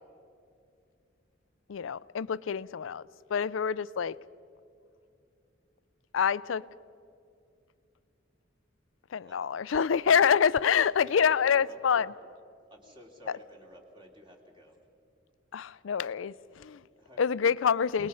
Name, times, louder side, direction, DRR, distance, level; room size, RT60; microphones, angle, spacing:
voice 1, 1.7-3.0 3.3-4.1 6.1-6.6 9.1-12.1 15.5-16.8 17.2-18.1, left 7 dB, 75° left, 0.4 m, -26 dB
voice 2, 10.8-12.1 12.7-14.8 17.0-18.1, equal, 25° right, 2.9 m, -52 dB
28.5 x 20.0 x 5.6 m
head